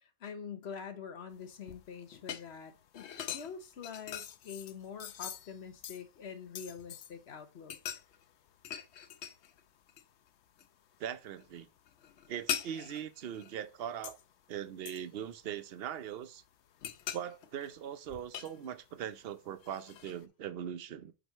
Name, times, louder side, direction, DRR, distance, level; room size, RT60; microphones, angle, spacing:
voice 1, 0.0-7.8, left 6 dB, 70° left, 1.2 m, -45 dB
sound 1, 1.3-7.2 7.6-9.6 9.9-10.7 11.0-14.3 14.8-16.0 16.4-19.1 19.6-20.2, left 9 dB, 90° left, 1.0 m, -43 dB
voice 2, 11.0-11.7 12.3-14.2 14.5-16.4 17.1-21.1, right 9 dB, 65° right, 0.9 m, -40 dB
7.6 x 5.2 x 3.0 m
omnidirectional pair, 1.1 m